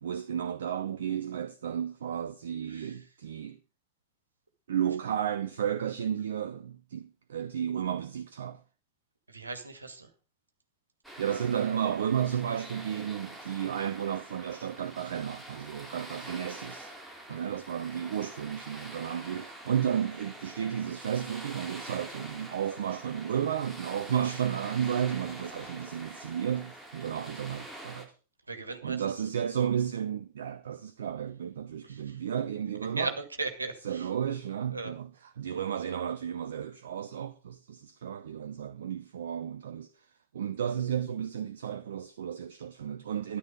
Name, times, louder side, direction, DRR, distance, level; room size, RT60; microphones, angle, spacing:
voice 1, 0.0-3.6 4.7-8.6 11.2-16.9 17.3-28.2 28.8-33.1 33.8-35.1 35.4-40.1 40.3-43.4, right 9 dB, 65° right, 0.6 m, -33 dB
voice 2, 2.7-3.0 9.3-10.1 17.3-17.6 19.3-19.4 28.5-29.0 31.8-32.2 33.0-34.1 34.7-34.9, right 3 dB, 80° right, 2.0 m, -37 dB
sound 1, 11.0-28.1, right 1 dB, ahead, 3.3 m, -45 dB
13.0 x 11.0 x 5.2 m
figure-of-eight pair, 90°, 0 cm